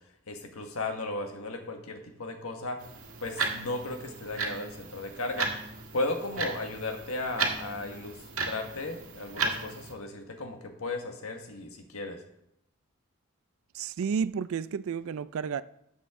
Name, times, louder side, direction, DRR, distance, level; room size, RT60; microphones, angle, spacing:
voice 1, 0.3-2.8 3.2-5.5 5.9-12.2, left 2 dB, 85° left, 1.5 m, -35 dB
sound 1, 2.8-9.9, right 4 dB, 90° right, 1.7 m, -35 dB
voice 2, 13.7-15.6, right 6 dB, 70° right, 0.3 m, -31 dB
12.5 x 7.4 x 3.7 m
head